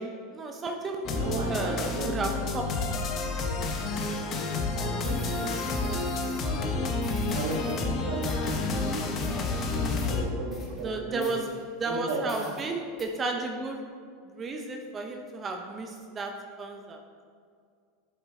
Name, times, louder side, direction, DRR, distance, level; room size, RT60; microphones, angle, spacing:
voice 1, 0.0-1.0 1.5-2.6 10.8-11.5 11.8-13.8 14.4-16.3 16.6-17.0, right 3 dB, 25° right, 3 dB, 0.8 m, -33 dB
sound 1, 1.0-10.2, left 3 dB, 40° left, 1.0 m, -30 dB
voice 2, 1.1-2.7 4.8-5.9 6.2-9.1 9.7-11.3 11.9-12.5, right 2 dB, 75° right, -1 dB, 1.8 m, -36 dB
sound 2, 5.0-6.6 7.0-7.9 8.2-8.8 9.0-9.5 10.0-10.1 10.5-10.8 11.2-11.9 12.3-12.7 13.0-13.1, left 3 dB, 25° left, 1.9 m, -48 dB
11.0 x 4.9 x 3.7 m, 2.2 s
hypercardioid pair, 105°, 0 cm